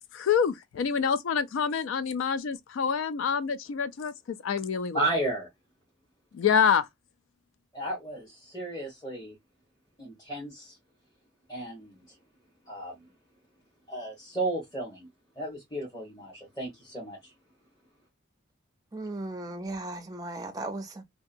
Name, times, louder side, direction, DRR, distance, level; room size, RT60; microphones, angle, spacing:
voice 1, 0.1-5.1 6.3-6.9, left 7 dB, 70° left, 0.3 m, -27 dB
voice 2, 4.9-5.5 7.7-9.3 10.0-10.8 11.5-12.0 12.7-13.1 13.9-15.1 15.4-17.3, right 2 dB, 20° left, 1.0 m, -34 dB
voice 3, 18.9-21.0, right 2 dB, 15° right, 0.4 m, -36 dB
2.8 x 2.2 x 2.5 m
head